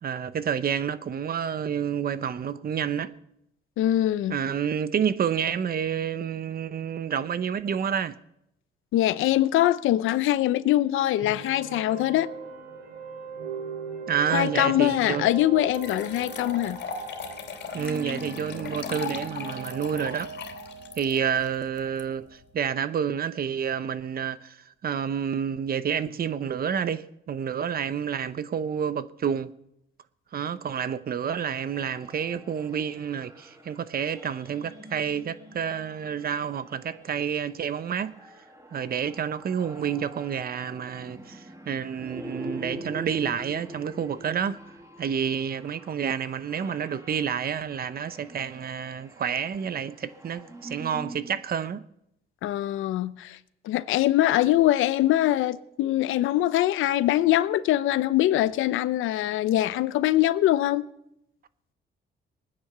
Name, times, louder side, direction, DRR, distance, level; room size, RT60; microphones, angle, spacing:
voice 1, 0.0-3.1 4.3-8.2 14.1-15.3 17.7-20.3 21.0-29.5 30.3-38.1 38.7-44.6 45.0-51.8, right 8 dB, 50° right, 0.9 m, -29 dB
voice 2, 3.8-4.4 8.9-12.3 14.3-16.8 52.4-53.4 53.6-60.8, left 14 dB, 85° left, 0.7 m, -23 dB
sound 1, 11.1-22.4, right 4 dB, 90° right, 2.9 m, -40 dB
Pouring a Drink, 15.1-15.2 15.7-22.0, left 6 dB, 65° left, 2.8 m, -38 dB
sound 2, 31.6-51.4, right 1 dB, 15° right, 2.3 m, -45 dB
20.0 x 9.9 x 6.8 m
cardioid pair, 90°, 20 cm